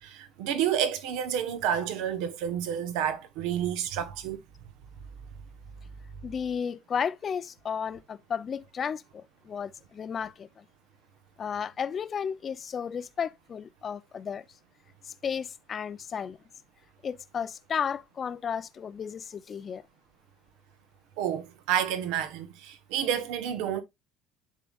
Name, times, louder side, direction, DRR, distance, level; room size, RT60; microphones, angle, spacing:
voice 1, 0.0-4.4 21.2-23.8, right 9 dB, 80° right, 1.1 m, -30 dB
voice 2, 6.2-10.6 11.4-14.4 15.2-16.4 17.0-19.8, left 7 dB, 35° left, 0.4 m, -33 dB
11.0 x 3.7 x 2.4 m
cardioid pair, 120°, 0 cm